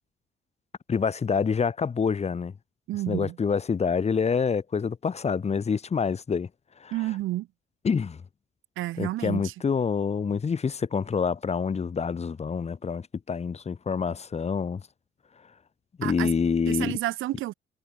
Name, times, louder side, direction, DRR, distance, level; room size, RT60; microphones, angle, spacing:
voice 1, 0.9-2.5 3.1-6.5 6.8-6.9 7.8-8.2 9.0-14.8 16.0-17.0, left 6 dB, 35° left, 1.1 m, -27 dB
voice 2, 2.9-3.4 6.9-7.5 8.8-9.5 16.0-16.3 16.7-17.5, right 16 dB, 85° right, 1.5 m, -30 dB
cardioid pair, 90°, 20 cm